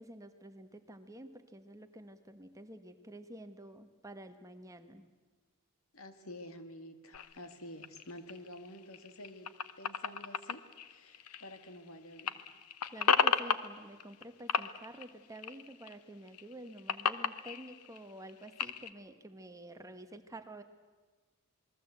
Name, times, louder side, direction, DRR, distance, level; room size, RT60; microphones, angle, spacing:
voice 1, 0.0-5.0 12.9-20.6, right 1 dB, 15° right, 8 dB, 1.3 m, -49 dB
voice 2, 5.9-9.5 9.8-10.6 10.9-12.5, left 1 dB, 65° left, 8 dB, 2.1 m, -49 dB
sound 1, 7.1-11.9 12.1-14.2 14.5-16.0 16.3-18.9, left 6 dB, 90° left, 1.0 m, -34 dB
28.0 x 21.5 x 8.1 m, 1.3 s
head